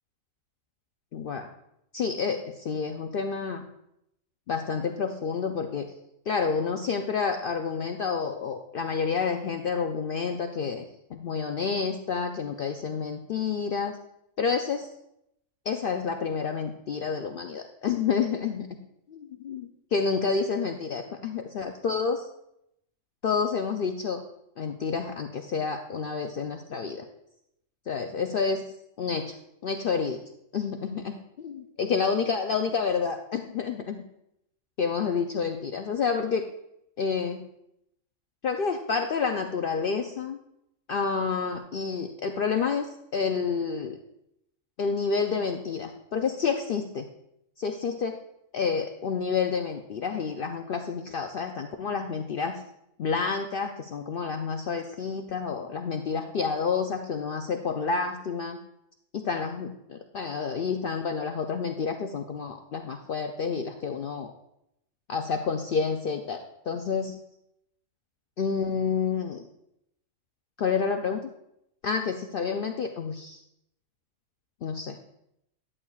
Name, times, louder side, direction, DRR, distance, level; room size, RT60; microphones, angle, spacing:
voice 1, 1.1-1.5 1.9-3.6 4.5-5.9 6.3-14.0 14.4-14.9 15.7-18.7 19.4-22.3 23.2-24.2 24.6-27.1 27.9-28.6 29.0-30.2 30.5-31.2 31.4-31.5 31.8-34.0 34.8-36.4 37.0-37.4 38.4-40.4 40.9-44.0 44.8-47.1 47.6-48.2 48.5-52.6 53.0-58.6 59.1-64.3 65.1-67.2 68.4-69.5 70.6-71.3 71.8-73.4 74.6-75.0, left 5 dB, 60° left, 5 dB, 0.6 m, -29 dB
11.0 x 8.4 x 2.3 m, 0.80 s
omnidirectional pair, 1.4 m